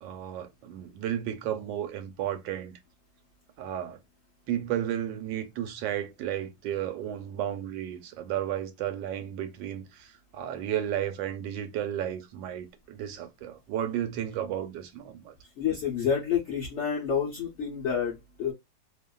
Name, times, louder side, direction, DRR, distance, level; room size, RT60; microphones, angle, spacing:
voice 1, 0.0-2.7 3.6-4.0 4.5-15.3, right 11 dB, 85° right, 1.3 m, -33 dB
voice 2, 15.6-18.5, left 7 dB, 65° left, 0.6 m, -29 dB
2.8 x 2.5 x 2.2 m
omnidirectional pair, 2.0 m